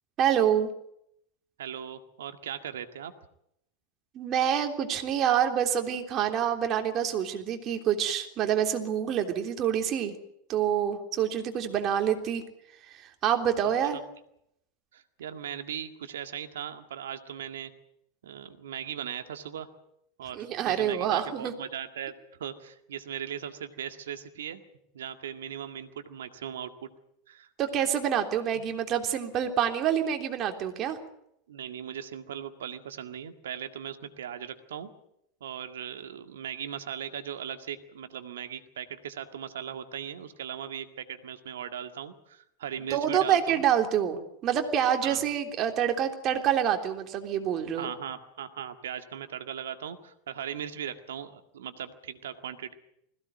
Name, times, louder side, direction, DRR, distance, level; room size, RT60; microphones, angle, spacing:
voice 1, 0.2-0.7 4.1-10.1 10.5-12.4 12.9-14.0 20.3-21.5 27.6-31.0 42.9-47.9, right 9 dB, 40° right, 5 dB, 3.4 m, -27 dB
voice 2, 1.6-3.1 13.6-14.0 14.9-17.7 18.2-19.7 20.2-22.1 22.4-24.6 24.9-26.9 27.3-27.5 28.5-28.6 31.5-34.9 35.4-43.6 45.0-45.2 47.8-52.7, right 9 dB, 75° right, 8 dB, 1.9 m, -38 dB
21.0 x 16.5 x 9.4 m, 0.77 s
hypercardioid pair, 90°, 0 cm